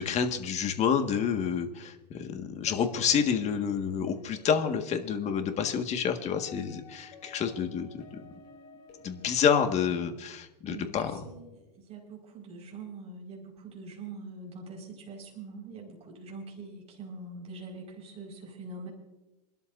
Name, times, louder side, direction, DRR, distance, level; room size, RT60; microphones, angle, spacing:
voice 1, 0.0-7.9 9.0-11.2, left 7 dB, 30° left, 6 dB, 1.7 m, -28 dB
sound 1, 2.7-9.5, left 3 dB, 50° left, 5.8 m, -51 dB
voice 2, 10.6-18.9, right 3 dB, 30° right, -2 dB, 4.9 m, -44 dB
27.0 x 13.0 x 2.6 m, 1.0 s
hypercardioid pair, 105°, 21 cm